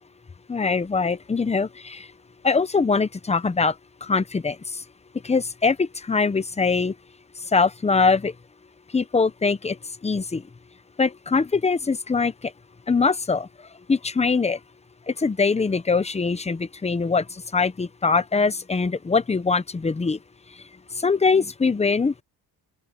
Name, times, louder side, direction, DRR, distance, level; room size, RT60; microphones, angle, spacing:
voice 1, 0.5-2.1 2.4-3.7 4.0-4.6 5.2-6.9 7.5-8.3 8.9-9.8 10.0-10.4 11.0-12.5 12.9-13.5 13.9-14.6 15.1-20.2 21.0-22.2, left 4 dB, 15° left, 0.8 m, -22 dB
open air
cardioid pair, 150°, 40 cm